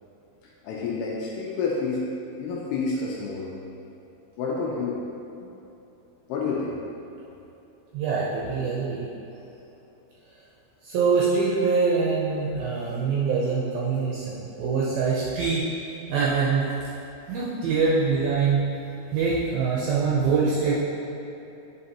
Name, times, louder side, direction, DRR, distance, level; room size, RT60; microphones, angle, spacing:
voice 1, 0.6-2.0 2.4-3.5 4.4-5.0 5.4-5.5 6.3-6.8, left 4 dB, 80° left, -3 dB, 2.5 m, -29 dB
voice 2, 7.9-9.1 10.8-15.7 16.1-16.6 17.3-18.6 19.1-20.7, right 5 dB, 80° right, -6 dB, 2.2 m, -24 dB
9.2 x 5.3 x 2.9 m, 2.9 s
omnidirectional pair, 5.1 m